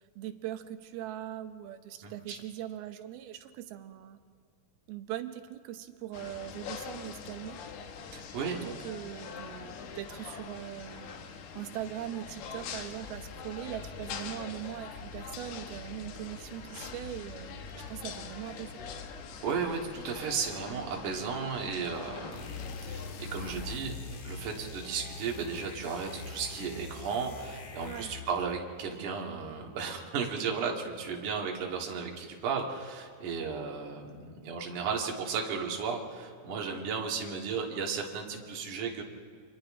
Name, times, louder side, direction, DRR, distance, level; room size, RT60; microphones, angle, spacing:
voice 1, 0.0-4.2 4.9-7.6 8.6-18.8 27.8-28.1, right 12 dB, 80° right, 9 dB, 2.8 m, -41 dB
voice 2, 2.0-2.4 8.1-8.6 19.4-24.0 24.2-39.0, right 5 dB, 55° right, 0 dB, 3.4 m, -34 dB
sound 1, 6.1-23.8, left 6 dB, 80° left, 3.2 m, -44 dB
sound 2, 12.4-22.9, left 3 dB, 15° left, 7.0 m, -50 dB
sound 3, 22.3-28.5, left 4 dB, 55° left, 2.4 m, -43 dB
29.5 x 26.0 x 3.8 m, 2.2 s
omnidirectional pair, 4.5 m